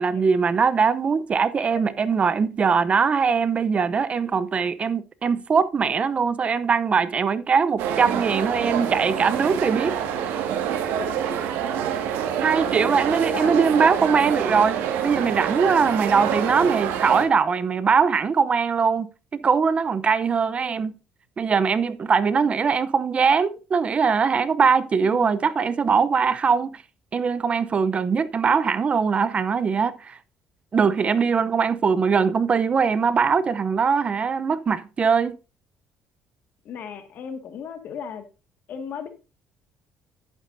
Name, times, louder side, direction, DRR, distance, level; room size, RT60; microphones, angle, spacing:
voice 1, 0.0-10.0 12.4-20.9 21.4-26.8 27.1-30.2 30.7-35.4, right 5 dB, 35° right, 0.7 m, -21 dB
sound 1, 7.8-17.3, right 9 dB, 85° right, 1.8 m, -26 dB
voice 2, 13.3-14.0 25.0-25.4 31.9-32.0 36.6-38.2 38.7-39.1, left 7 dB, 60° left, 1.9 m, -35 dB
11.0 x 9.0 x 2.6 m
cardioid pair, 90°, 3 cm